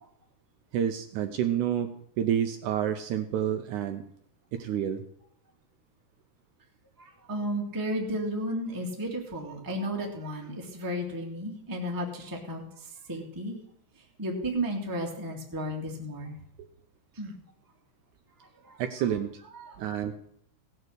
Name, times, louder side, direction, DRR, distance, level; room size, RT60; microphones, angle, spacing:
voice 1, 0.7-4.0 4.5-5.0 18.8-19.4 19.8-20.1, right 9 dB, 75° right, 7 dB, 1.9 m, -29 dB
voice 2, 7.0-13.6 14.2-16.4 17.1-17.4 18.6-18.8 19.6-19.8, equal, 10° right, -1 dB, 1.2 m, -33 dB
16.5 x 6.8 x 6.4 m, 0.70 s
omnidirectional pair, 3.9 m